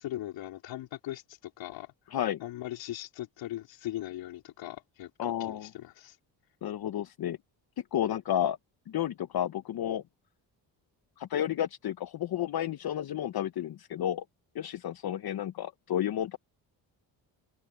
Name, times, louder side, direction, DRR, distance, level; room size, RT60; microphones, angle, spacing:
voice 1, 0.0-1.9 2.4-5.1 5.4-6.2, left 14 dB, 85° left, 4.2 m, -39 dB
voice 2, 2.1-2.4 5.2-5.7 6.6-7.4 7.9-8.6 8.9-10.0 11.2-14.2 14.5-16.4, left 11 dB, 55° left, 1.0 m, -31 dB
open air
cardioid pair, 75°, 44 cm